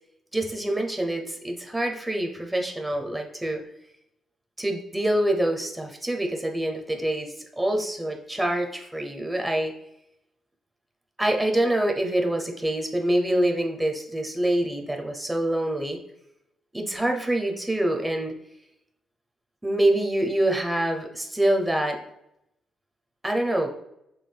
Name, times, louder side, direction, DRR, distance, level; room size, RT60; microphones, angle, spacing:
voice 1, 0.3-3.6 4.6-9.7 11.2-16.0 16.7-18.3 19.6-22.0 23.2-23.7, right 1 dB, 10° right, 3 dB, 0.8 m, -25 dB
5.8 x 3.6 x 2.2 m, 0.82 s
cardioid pair, 90°, 0 cm